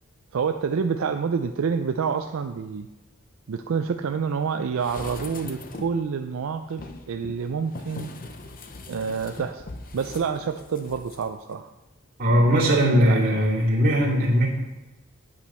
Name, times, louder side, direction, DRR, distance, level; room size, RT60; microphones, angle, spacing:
voice 1, 0.3-2.9 3.5-8.1 8.9-9.7 9.9-11.7 12.3-13.6, right 6 dB, 70° right, 7 dB, 0.4 m, -28 dB
sound 1, 4.8-6.1 6.7-11.2 11.5-11.6, left 2 dB, 40° left, 0.7 m, -40 dB
voice 2, 12.2-14.5, equal, 45° right, -5 dB, 2.5 m, -19 dB
8.6 x 8.1 x 4.3 m, 1.1 s
head